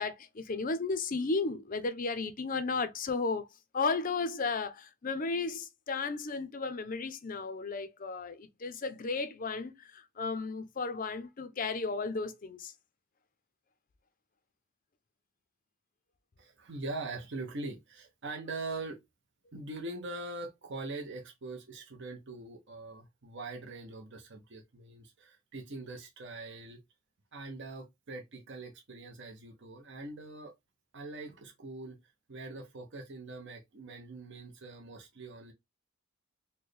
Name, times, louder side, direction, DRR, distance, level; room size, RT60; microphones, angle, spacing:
voice 1, 0.0-3.5 3.7-12.7, left 4 dB, 40° left, 0.5 m, -34 dB
voice 2, 16.4-19.0 19.5-26.8 27.3-30.5 30.9-32.0 32.3-35.5, right 2 dB, 55° right, 0.7 m, -42 dB
4.3 x 2.1 x 3.1 m
head